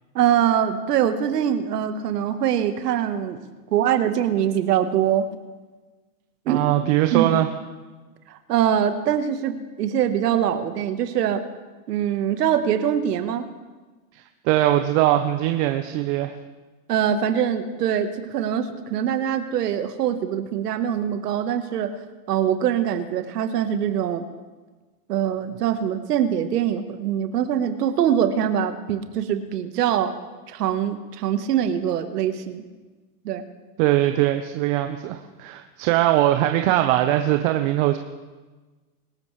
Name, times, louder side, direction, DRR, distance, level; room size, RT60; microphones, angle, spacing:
voice 1, 0.1-3.4 3.7-5.3 6.4-6.6 7.1-7.3 8.3-11.4 11.9-13.4 16.9-21.9 22.3-24.2 25.1-30.1 30.5-32.6 33.2-33.4, right 9 dB, 80° right, 9 dB, 1.5 m, -23 dB
voice 2, 6.5-7.5 14.1-16.3 33.8-38.0, right 14 dB, 55° right, 6 dB, 1.1 m, -21 dB
25.0 x 13.5 x 3.3 m, 1.3 s
hypercardioid pair, 115°, 47 cm